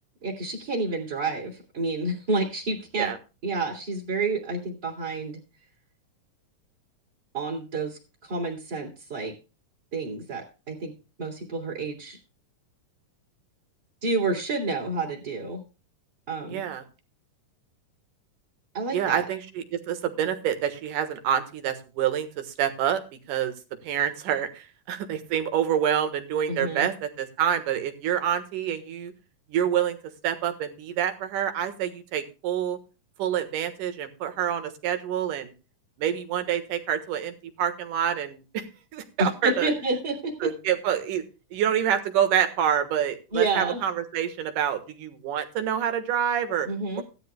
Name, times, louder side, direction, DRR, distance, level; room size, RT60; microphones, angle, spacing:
voice 1, 0.2-3.1 3.4-5.4 7.3-9.3 9.9-10.9 11.2-12.2 14.0-15.6 16.3-16.6 18.7-19.2 26.5-26.9 39.2-40.5 43.3-43.8 46.6-47.0, right 3 dB, 30° right, -5 dB, 3.1 m, -29 dB
voice 2, 16.4-16.8 18.9-23.0 23.3-23.5 23.8-29.1 29.5-30.0 30.2-32.8 33.2-35.5 36.0-38.6 38.9-39.7 40.4-41.2 41.5-46.7, right 9 dB, 75° right, 8 dB, 2.9 m, -27 dB
16.5 x 12.0 x 2.3 m, 0.31 s
omnidirectional pair, 3.9 m